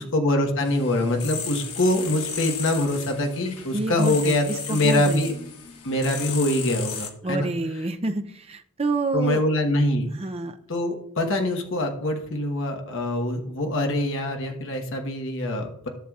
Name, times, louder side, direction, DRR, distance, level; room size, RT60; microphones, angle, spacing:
voice 1, 0.0-5.3 5.8-7.5 9.1-10.1 10.7-15.9, left 1 dB, 60° left, 3 dB, 1.2 m, -24 dB
sound 1, 0.6-7.1, left 6 dB, 85° left, 1.3 m, -35 dB
voice 2, 3.7-5.2 7.2-9.4 10.1-10.6, right 2 dB, 25° right, 8 dB, 0.5 m, -28 dB
13.5 x 6.8 x 2.4 m, 0.68 s
head